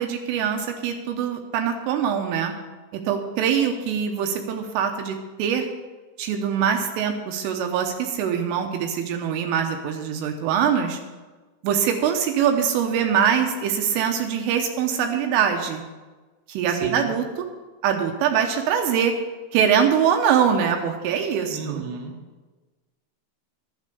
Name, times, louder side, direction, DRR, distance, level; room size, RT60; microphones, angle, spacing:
voice 1, 0.0-2.5 2.9-5.7 6.2-11.0 11.6-15.8 16.5-17.5 17.8-19.1 19.5-21.9, right 8 dB, 80° right, 4 dB, 3.5 m, -23 dB
voice 2, 16.7-17.1 21.5-22.1, right 5 dB, 60° right, 1 dB, 3.0 m, -34 dB
12.0 x 9.7 x 6.8 m, 1.3 s
omnidirectional pair, 5.8 m